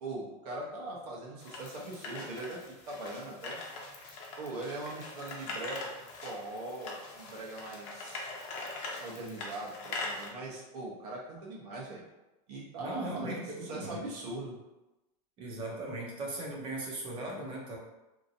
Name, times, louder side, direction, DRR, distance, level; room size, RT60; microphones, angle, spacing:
voice 1, 0.0-2.6 2.9-3.6 4.4-5.8 6.1-8.3 9.0-12.0 12.5-14.5, right 2 dB, 75° right, -3 dB, 1.0 m, -41 dB
sound 1, 1.4-10.3, left 3 dB, 55° left, 0.7 m, -42 dB
voice 2, 12.8-14.0 15.4-17.8, right 1 dB, 25° right, -2 dB, 0.7 m, -38 dB
2.9 x 2.5 x 2.6 m, 0.99 s
supercardioid pair, 155°, 20 cm